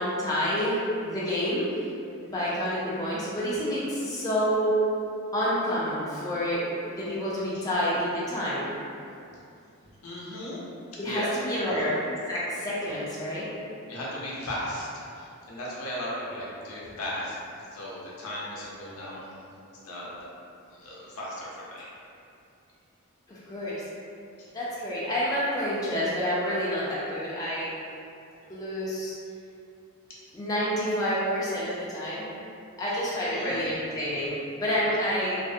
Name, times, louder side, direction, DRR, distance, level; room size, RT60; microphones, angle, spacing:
voice 1, 0.0-1.7 2.3-4.7 5.3-8.8 11.0-11.9 12.3-13.5 23.3-23.8 24.5-27.7 28.5-29.1 30.3-32.3 32.8-35.4, equal, 15° left, -9 dB, 0.4 m, -28 dB
voice 2, 10.0-10.6 10.9-11.4 11.7-11.9 13.1-13.2 13.9-14.9 15.1-19.5 19.8-20.3 20.7-21.9 24.4-24.5 30.1-30.3 33.1-33.7, left 1 dB, 80° left, -6 dB, 0.6 m, -36 dB
2.4 x 2.0 x 2.6 m, 2.6 s
head